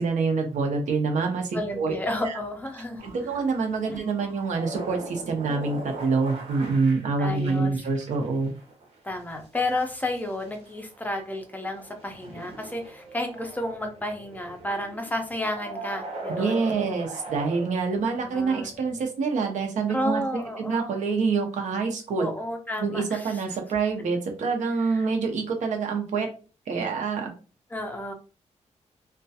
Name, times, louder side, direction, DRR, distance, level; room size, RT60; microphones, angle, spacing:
voice 1, 0.0-2.0 2.2-2.4 3.0-8.5 16.3-20.2 20.7-22.3 22.8-26.3 26.7-27.3, right 4 dB, 80° right, 3 dB, 0.7 m, -26 dB
voice 2, 1.5-3.0 3.9-4.0 7.2-7.7 9.0-16.6 18.2-18.7 19.9-21.0 22.2-23.4 24.8-25.1 27.7-28.1, left 1 dB, 15° left, 4 dB, 0.4 m, -31 dB
sound 1, 3.0-19.0, right 2 dB, 55° right, 0.8 m, -40 dB
2.3 x 2.2 x 2.6 m, 0.35 s
wide cardioid pair, 165°, 12 cm